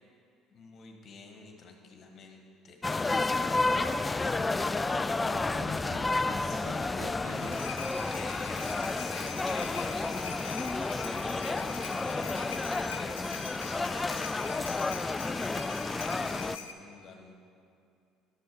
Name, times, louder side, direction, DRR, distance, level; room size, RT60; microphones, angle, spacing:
voice 1, 0.5-4.0 6.4-7.2 8.1-17.4, left 4 dB, 50° left, 3 dB, 1.6 m, -49 dB
sound 1, 2.8-16.6, left 3 dB, 20° left, 0.3 m, -31 dB
voice 2, 5.2-7.7, right 8 dB, 85° right, 11 dB, 0.4 m, -49 dB
sound 2, 7.3-16.7, left 7 dB, 85° left, 0.6 m, -43 dB
12.0 x 6.2 x 6.0 m, 2.5 s
hypercardioid pair, 60°, 0 cm